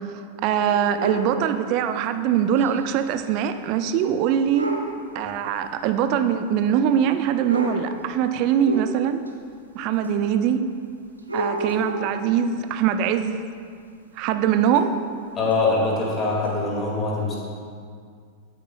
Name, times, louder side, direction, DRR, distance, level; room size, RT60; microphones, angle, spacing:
voice 1, 0.4-4.7 5.1-9.2 9.7-10.6 11.3-13.4 14.2-14.9, right 8 dB, 45° right, 9 dB, 0.5 m, -22 dB
sound 1, 0.7-1.4 2.6-2.7 3.1-3.2 4.5-5.0 6.0-6.1 7.1-7.2 7.5-8.0 8.6-9.3 10.0-10.1 11.2-12.3 14.8-14.9 15.5-15.6 16.4-16.5, right 1 dB, 80° right, 0.8 m, -30 dB
voice 2, 15.4-17.4, left 3 dB, 25° left, -3 dB, 2.3 m, -23 dB
13.0 x 8.6 x 2.4 m, 2.2 s
figure-of-eight pair, 90°, 0 cm